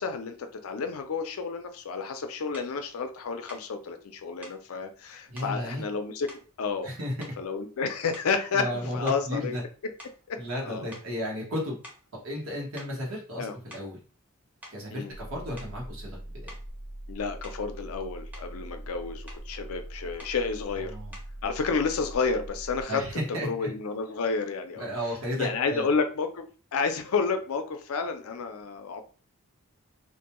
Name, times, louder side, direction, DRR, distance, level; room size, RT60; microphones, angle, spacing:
voice 1, 0.0-6.3 6.6-6.9 7.4-9.6 10.3-10.9 13.4-13.5 14.9-15.1 17.1-21.0 21.4-23.0 23.3-24.9 25.4-29.0, left 5 dB, 75° left, 7 dB, 0.4 m, -30 dB
sound 1, 2.5-2.8 3.5-3.7 4.4-4.7 5.4-5.6 6.3-6.9 7.2-7.6 8.1-8.5 9.1-10.6 10.9-11.1 11.8-12.1 12.8-13.0 13.5-14.0 14.6-14.8 15.6-15.8 16.5-16.7 17.4-17.7 18.1-18.5 19.3-19.5 20.2-20.4 21.1-21.4, left 1 dB, 10° right, 0.6 m, -49 dB
voice 2, 5.3-5.8 6.8-7.1 8.5-9.6 10.4-11.8 12.2-14.0 14.7-16.1 16.4-16.5 20.9-21.1 22.9-23.7 24.7-25.9, equal, 70° right, -2 dB, 1.1 m, -33 dB
sound 2, 15.1-22.8, right 1 dB, 55° right, 0.5 m, -42 dB
2.4 x 2.2 x 2.9 m, 0.37 s
head